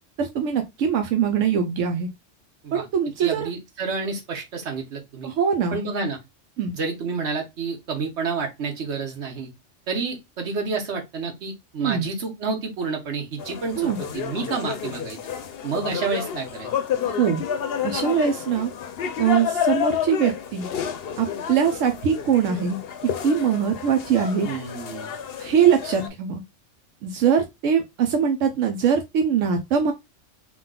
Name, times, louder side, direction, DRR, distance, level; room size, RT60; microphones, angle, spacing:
voice 1, 0.2-2.1 2.7-3.5 5.2-5.8 6.6-6.7 11.8-12.1 13.8-14.0 17.2-17.4 17.8-18.7 19.2-20.7 21.2-22.8 23.2-24.5 25.4-26.4 27.0-29.9, right 7 dB, 85° right, 1.0 m, -22 dB
voice 2, 3.2-5.3 5.7-6.2 6.7-9.5 9.9-15.2 15.6-16.7 24.4-25.1, right 4 dB, 65° right, 1.3 m, -29 dB
sound 1, 13.4-26.1, left 8 dB, 60° left, 0.7 m, -30 dB
3.7 x 2.4 x 3.7 m
omnidirectional pair, 1.3 m